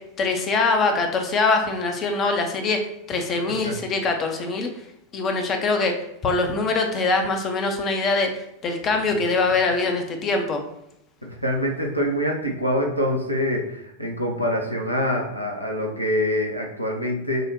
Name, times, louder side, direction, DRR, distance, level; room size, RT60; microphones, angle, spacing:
voice 1, 0.0-2.8 3.1-4.7 5.1-10.6, left 3 dB, 30° left, 4 dB, 0.6 m, -23 dB
voice 2, 11.2-17.5, equal, 90° left, 1 dB, 0.7 m, -25 dB
6.3 x 2.1 x 2.8 m, 0.82 s
figure-of-eight pair, 90°, 0 cm